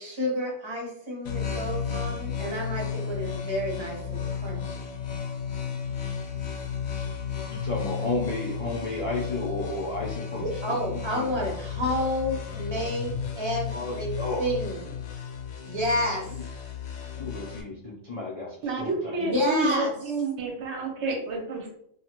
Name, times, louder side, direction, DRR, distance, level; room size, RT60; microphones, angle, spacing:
voice 1, 0.0-4.6 10.3-14.1 14.4-14.8 15.7-16.2 19.2-19.9, equal, 25° right, -2 dB, 0.7 m, -30 dB
sound 1, 1.2-17.6, left 7 dB, 90° left, 1.0 m, -33 dB
voice 2, 7.5-11.5 13.7-14.5 16.1-16.4 17.2-19.5, left 2 dB, 60° left, -5 dB, 0.3 m, -33 dB
voice 3, 18.6-21.7, right 2 dB, 65° right, 2 dB, 0.9 m, -29 dB
2.8 x 2.3 x 2.9 m, 0.71 s
omnidirectional pair, 1.4 m